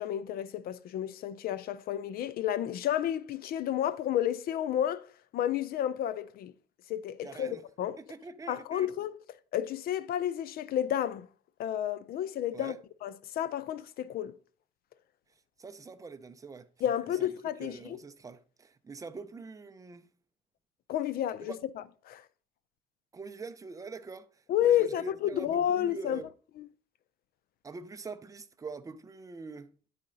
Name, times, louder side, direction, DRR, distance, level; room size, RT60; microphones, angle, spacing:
voice 1, 0.0-5.1 5.3-6.5 6.9-8.0 8.5-9.1 9.5-11.3 11.6-12.7 13.0-14.3 16.8-18.0 20.9-21.6 22.1-22.2 24.5-26.2 26.6-26.7, left 10 dB, 65° left, 0.5 m, -31 dB
voice 2, 7.2-7.6 8.0-8.9 12.5-12.8 15.6-16.7 17.1-20.1 21.4-21.6 23.1-26.3 27.6-29.7, right 4 dB, 20° right, 0.5 m, -44 dB
10.0 x 4.3 x 3.8 m
cardioid pair, 110°, 17 cm